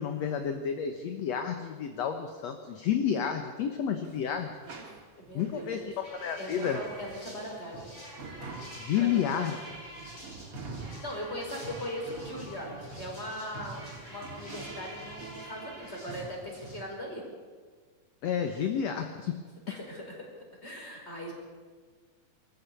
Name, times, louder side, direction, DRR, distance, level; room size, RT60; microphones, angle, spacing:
voice 1, 0.0-4.5 5.3-6.8 8.8-9.6 18.2-19.4, left 8 dB, 65° left, 6 dB, 2.2 m, -30 dB
sound 1, 4.0-16.9, right 3 dB, 45° right, 3.4 m, -46 dB
voice 2, 5.2-5.9 6.4-7.9 8.9-9.5 11.0-17.2 19.7-20.3 20.6-21.3, equal, 20° left, 0 dB, 5.2 m, -39 dB
sound 2, 6.0-16.8, equal, 45° left, 9.0 m, -48 dB
24.0 x 14.5 x 8.5 m, 1.5 s
omnidirectional pair, 3.6 m